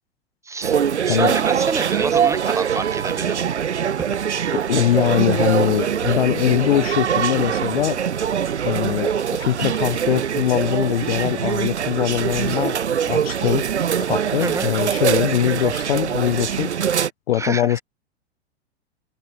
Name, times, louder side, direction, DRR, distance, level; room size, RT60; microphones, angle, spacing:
voice 1, 0.4-0.8 1.0-3.4 4.0-4.1 14.4-14.7 17.3-17.8, right 4 dB, 10° right, 1.4 m, -28 dB
sound 1, 0.6-17.1, right 8 dB, 85° right, 0.5 m, -23 dB
voice 2, 4.7-8.0 8.6-12.8 13.1-13.6 14.0-16.7 17.3-17.8, left 12 dB, 60° left, 0.6 m, -22 dB
figure-of-eight pair, 90°, 33 cm